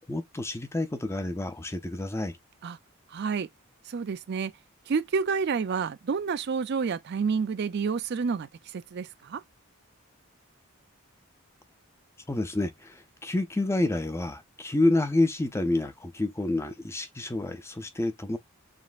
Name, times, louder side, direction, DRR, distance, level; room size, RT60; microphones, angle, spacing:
voice 1, 0.1-2.4 12.3-18.4, left 2 dB, 10° left, 0.5 m, -28 dB
voice 2, 3.1-3.5 3.9-4.5 4.9-8.5 8.9-9.4, right 5 dB, 50° right, 0.4 m, -29 dB
5.1 x 3.2 x 2.4 m
head